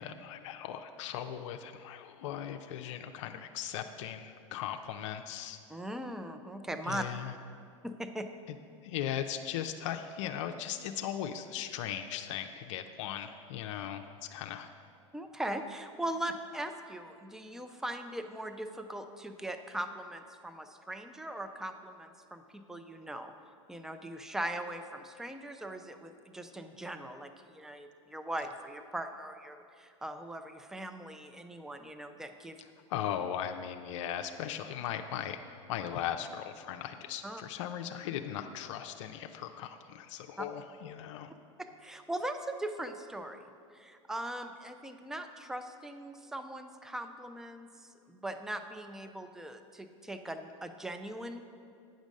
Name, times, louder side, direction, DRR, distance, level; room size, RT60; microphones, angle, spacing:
voice 1, 0.0-5.6 6.9-7.3 8.5-8.6 8.8-14.7 32.9-35.4 35.7-41.3, left 10 dB, 70° left, 6 dB, 0.5 m, -38 dB
voice 2, 5.7-7.0 7.8-8.3 15.1-23.3 23.7-32.6 37.2-37.4 40.4-40.5 41.6-43.4 43.7-51.4, right 1 dB, 5° right, 8 dB, 0.5 m, -40 dB
9.2 x 5.2 x 6.3 m, 2.4 s
hypercardioid pair, 105°, 16 cm